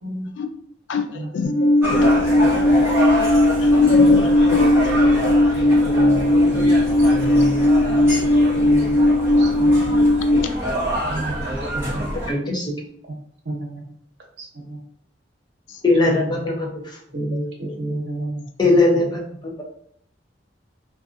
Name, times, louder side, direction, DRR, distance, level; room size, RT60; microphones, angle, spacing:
voice 1, 0.9-2.5 3.2-4.7 5.2-5.3 7.4-7.5 15.7-15.8, left 6 dB, 75° left, 7 dB, 0.3 m, -24 dB
Alarm, 1.4-10.4, left 1 dB, 35° right, 1.1 m, -17 dB
sound 1, 1.8-12.3, equal, 15° right, 0.9 m, -26 dB
voice 2, 5.5-6.8 7.1-8.2 8.6-9.0 9.4-9.9 11.1-12.1 13.1-13.2 13.4-13.8 14.4-14.8 16.0-16.1 17.1-19.0, right 2 dB, 70° right, -1 dB, 0.8 m, -30 dB
voice 3, 12.3-12.7 15.8-17.0 18.6-19.6, left 2 dB, 25° left, -1 dB, 0.6 m, -20 dB
2.6 x 2.3 x 2.4 m, 0.65 s
head